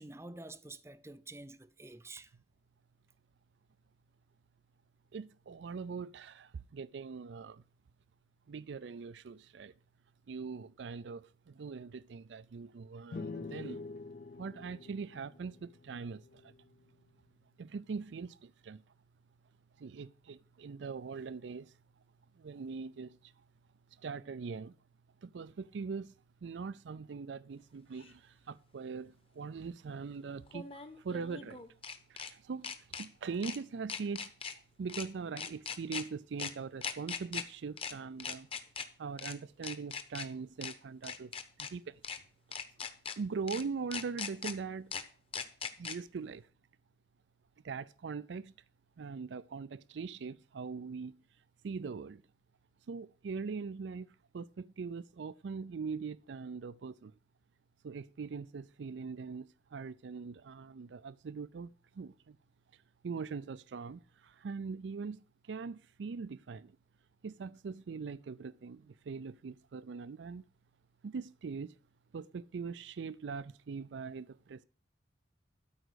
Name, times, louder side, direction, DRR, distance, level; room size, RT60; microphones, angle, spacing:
voice 1, 0.0-2.3, right 2 dB, 15° right, 0.6 m, -48 dB
voice 2, 5.1-7.6 8.5-9.7 10.3-13.8 14.4-16.5 17.6-18.8 19.8-21.7 22.4-23.3 24.0-24.7 25.2-26.1 26.4-30.7 30.9-31.6 32.1-38.5 39.0-41.3 41.6-42.0 43.2-44.9 45.8-46.5 47.6-48.5 49.0-51.1 51.6-52.2 52.9-54.1 54.3-57.1 57.8-62.4 63.0-66.8 67.2-70.4 71.0-71.7 72.1-74.6, right 5 dB, 85° right, 0.4 m, -42 dB
sound 1, 13.1-16.7, left 3 dB, 50° left, 0.4 m, -46 dB
sound 2, 28.0-28.1 30.5-32.3 32.6-33.1 33.4-33.6 33.9-34.5 34.9-35.1 35.4-36.0 36.4-36.5 36.8-37.4 37.8-37.9 38.2-38.9 39.2-39.3 39.6-40.3 40.6-40.7 41.0-41.7 42.0-42.2 42.5-43.2 43.5-43.6 43.9-44.5 44.9-45.0 45.3-46.0, left 6 dB, 30° left, 1.1 m, -40 dB
12.5 x 5.1 x 8.1 m
head